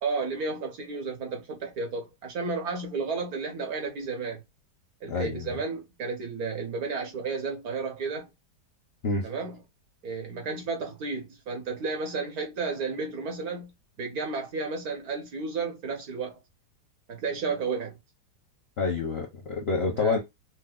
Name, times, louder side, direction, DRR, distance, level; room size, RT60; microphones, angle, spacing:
voice 1, 0.0-4.4 5.0-8.3 9.2-9.6 10.0-13.7 14.0-16.4 17.1-18.0 19.9-20.2, right 4 dB, 60° right, 1.2 m, -32 dB
voice 2, 5.1-5.5 9.0-9.3 18.8-20.2, left 4 dB, 55° left, 0.6 m, -27 dB
4.7 x 2.0 x 2.3 m
omnidirectional pair, 1.9 m